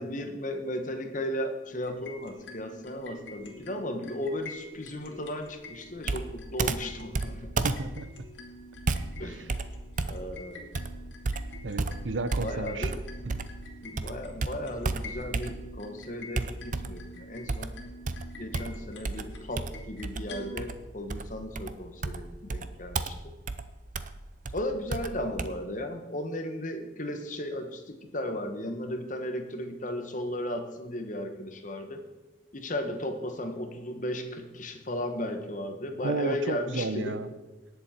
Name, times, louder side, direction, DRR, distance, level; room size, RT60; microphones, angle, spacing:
voice 1, 0.0-7.5 9.2-9.4 10.1-10.7 12.4-13.0 13.8-17.7 18.4-23.3 24.5-32.0 32.5-37.2, left 1 dB, 40° left, 6 dB, 1.3 m, -35 dB
sound 1, 1.7-20.6, left 1 dB, 70° left, 1.9 m, -47 dB
Computer keyboard, 6.0-13.6 14.0-15.9 16.3-17.1 17.5-25.5, right 3 dB, 40° right, 0.6 m, -33 dB
voice 2, 7.6-8.1 11.6-12.9 13.2-13.4 36.0-37.3, right 3 dB, 75° right, 12 dB, 0.8 m, -32 dB
18.5 x 7.2 x 4.4 m, 1.1 s
head